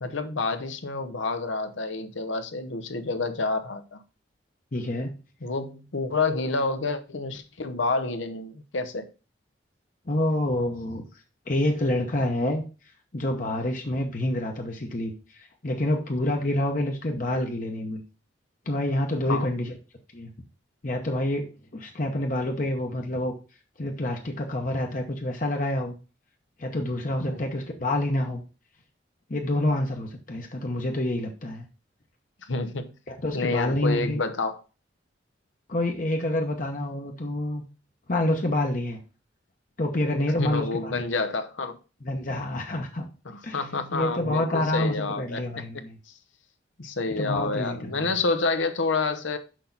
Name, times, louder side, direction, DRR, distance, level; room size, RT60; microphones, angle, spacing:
voice 1, 0.0-4.0 5.4-9.1 19.3-19.5 27.2-27.4 32.4-32.9 33.3-34.6 40.4-41.8 43.2-45.4 46.8-49.4, left 3 dB, 85° left, 0.9 m, -28 dB
voice 2, 4.7-5.1 10.1-11.0 11.5-12.6 13.1-18.0 18.7-19.7 20.1-20.3 20.8-23.3 23.8-26.0 26.6-28.4 29.3-31.7 33.1-34.2 35.7-37.6 38.1-39.0 39.8-41.0 42.0-43.1 43.4-43.6 43.9-46.0 47.2-48.1, left 1 dB, 45° left, 0.9 m, -27 dB
6.3 x 5.8 x 3.9 m
head